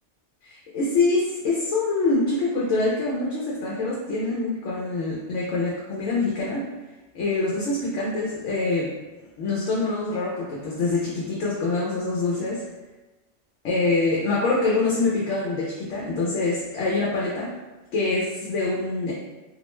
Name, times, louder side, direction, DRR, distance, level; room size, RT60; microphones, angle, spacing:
voice 1, 0.7-6.7 7.1-8.9 9.4-12.6 13.6-17.5 17.9-19.1, left 3 dB, 90° left, -5 dB, 0.9 m, -25 dB
2.4 x 2.1 x 2.9 m, 1.1 s
omnidirectional pair, 1.2 m